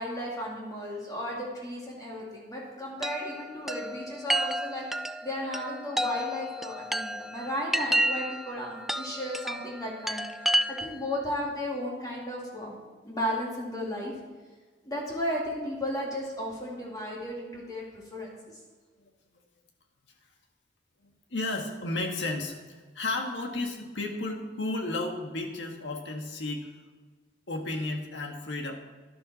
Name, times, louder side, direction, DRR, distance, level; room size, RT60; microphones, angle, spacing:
voice 1, 0.0-4.8 5.2-12.8 13.0-14.1 14.8-18.6, equal, 20° left, -4 dB, 2.5 m, -34 dB
Chime, 3.0-11.1, right 1 dB, ahead, 0.3 m, -31 dB
voice 2, 21.0-22.6 22.9-26.7 27.5-28.7, left 2 dB, 80° left, 2 dB, 1.8 m, -33 dB
12.0 x 11.5 x 4.3 m, 1.4 s
head